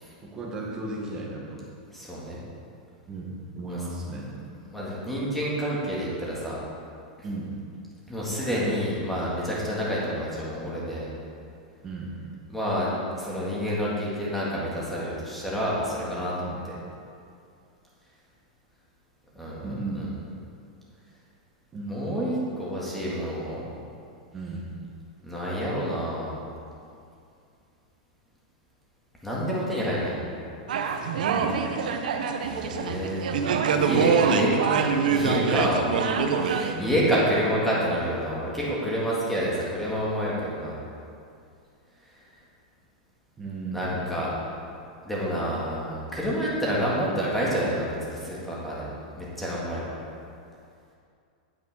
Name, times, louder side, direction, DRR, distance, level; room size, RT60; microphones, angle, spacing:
voice 1, 0.2-1.6 3.1-4.3 7.2-7.6 11.8-12.1 16.4-16.6 19.6-20.0 21.7-22.1 24.3-24.7 31.3-31.6 36.7-36.9 43.4-44.2 45.3-45.5, right 2 dB, 15° right, -3 dB, 1.5 m, -35 dB
voice 2, 1.9-2.4 3.7-3.8 4.7-6.6 8.1-11.1 12.5-16.3 19.4-19.7 19.9-20.1 21.9-23.6 25.2-26.3 29.2-30.2 30.8-31.0 32.4-33.3 33.7-35.8 36.3-40.8 43.7-44.3 45.0-50.0, equal, 5° left, -7 dB, 1.9 m, -28 dB
sound 1, 30.7-36.7, right 6 dB, 80° right, 0.8 m, -24 dB
9.1 x 8.4 x 4.9 m, 2.4 s
supercardioid pair, 170°, 4 cm